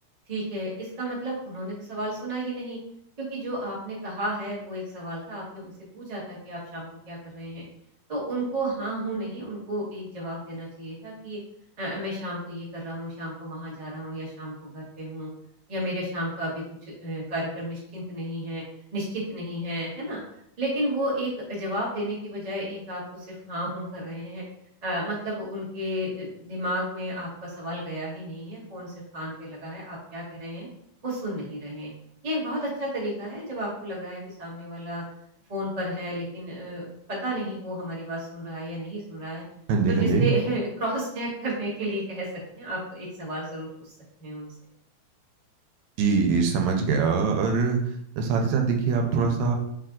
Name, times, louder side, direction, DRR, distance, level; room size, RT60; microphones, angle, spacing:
voice 1, 0.3-2.8 3.3-7.6 8.1-11.4 11.8-15.3 15.7-16.6 17.0-18.6 18.9-20.2 20.6-24.4 24.8-30.7 31.0-31.9 32.2-35.0 35.5-39.4 39.9-42.3 42.5-43.9 44.2-44.5, right 1 dB, 55° right, -5 dB, 0.4 m, -32 dB
voice 2, 39.7-40.3 46.0-49.6, right 5 dB, 80° right, 3 dB, 1.9 m, -23 dB
4.1 x 3.3 x 3.7 m, 0.73 s
omnidirectional pair, 3.3 m